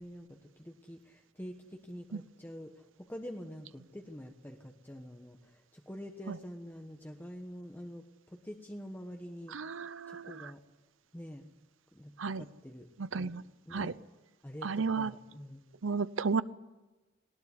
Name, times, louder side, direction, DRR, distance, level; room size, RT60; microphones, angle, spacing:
voice 1, 0.0-9.6 10.1-10.6 11.1-11.5 11.9-12.9 13.1-14.0 14.4-15.6, equal, 10° left, 3 dB, 1.2 m, -46 dB
voice 2, 9.5-10.5 12.2-12.4 13.0-13.4 13.7-13.9 14.6-15.1 15.8-16.4, right 4 dB, 90° right, 16 dB, 0.7 m, -33 dB
19.5 x 18.5 x 9.7 m, 1.1 s
head